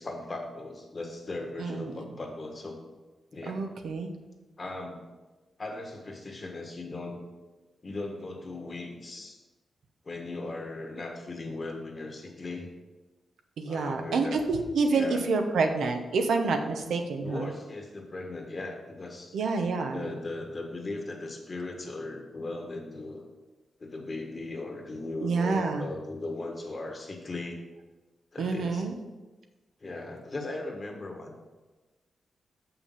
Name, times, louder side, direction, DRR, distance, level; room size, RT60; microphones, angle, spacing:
voice 1, 0.0-2.8 3.3-3.6 4.6-5.0 5.6-7.2 7.8-9.4 10.0-12.7 13.6-14.4 14.9-15.2 17.2-19.4 19.9-23.3 23.8-27.6 28.3-28.8 29.8-31.4, left 2 dB, 40° left, 2 dB, 1.6 m, -38 dB
voice 2, 1.6-1.9 3.5-4.1 13.6-17.5 19.3-20.0 25.2-25.9 28.4-28.9, right 4 dB, 90° right, 5 dB, 0.9 m, -28 dB
6.8 x 5.9 x 5.7 m, 1.2 s
cardioid pair, 100°, 0 cm